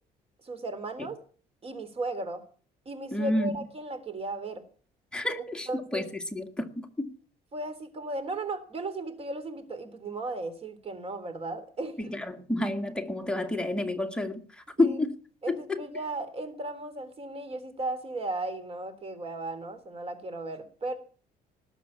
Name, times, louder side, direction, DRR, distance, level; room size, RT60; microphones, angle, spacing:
voice 1, 0.4-1.2 1.6-2.4 2.9-4.6 5.7-6.1 7.5-12.0 14.8-15.0 15.4-21.0, right 2 dB, 35° right, 3.5 m, -35 dB
voice 2, 3.1-3.6 5.1-7.1 12.0-15.1 15.5-15.8, left 2 dB, 5° left, 1.8 m, -30 dB
19.5 x 7.3 x 8.7 m
cardioid pair, 110°, 17 cm